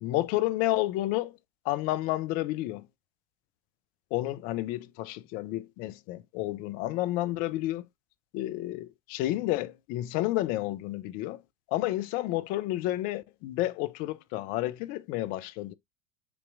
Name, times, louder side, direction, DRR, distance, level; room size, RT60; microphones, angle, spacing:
voice 1, 0.0-1.4 1.7-2.9 4.1-7.8 8.3-11.4 11.7-15.7, left 16 dB, 50° left, 0.5 m, -30 dB
7.1 x 2.9 x 2.4 m
hypercardioid pair, 80°, 18 cm